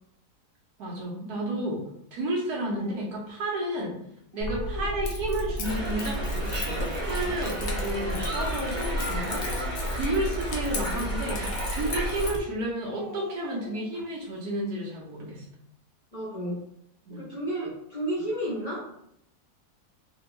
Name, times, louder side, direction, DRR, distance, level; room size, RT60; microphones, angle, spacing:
voice 1, 0.8-1.8 2.1-4.0 4.3-15.4 17.1-17.3, right 1 dB, 75° right, -2 dB, 1.3 m, -32 dB
Speech, 2.7-3.0 3.8-3.9 4.2-5.1 5.5-6.1 6.6-8.9 9.1-10.1 10.6-11.5 11.9-12.5 12.9-14.0, left 3 dB, 55° left, 1.2 m, -44 dB
Keys jangling, 4.4-12.4, equal, 75° left, 0.5 m, -32 dB
sound 1, 5.6-12.3, equal, 35° right, 0.4 m, -35 dB
voice 2, 16.1-16.6 17.1-18.9, right 1 dB, 30° left, -9 dB, 0.9 m, -32 dB
3.4 x 2.2 x 3.0 m, 0.73 s
omnidirectional pair, 1.7 m